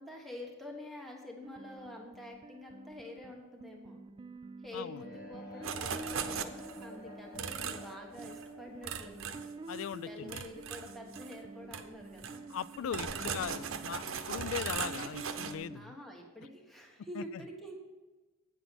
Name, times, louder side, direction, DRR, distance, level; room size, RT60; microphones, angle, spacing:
voice 1, 0.0-4.0 4.6-9.3 10.1-12.4 12.8-13.3 15.7-17.7, left 1 dB, ahead, -1 dB, 1.2 m, -47 dB
sound 1, 1.4-15.8, right 3 dB, 25° right, 0.3 m, -48 dB
sound 2, 4.9-10.8, left 1 dB, 50° left, 1.2 m, -52 dB
sound 3, 5.6-6.9 7.4-7.9 8.2-8.5 8.8-10.0 10.3-11.4 11.7-11.9 12.2-15.5, right 6 dB, 70° right, 0.7 m, -39 dB
voice 2, 9.7-10.4 12.5-16.0 17.2-17.4, left 8 dB, 70° left, 18 dB, 0.3 m, -39 dB
9.0 x 6.0 x 6.8 m, 1.2 s
head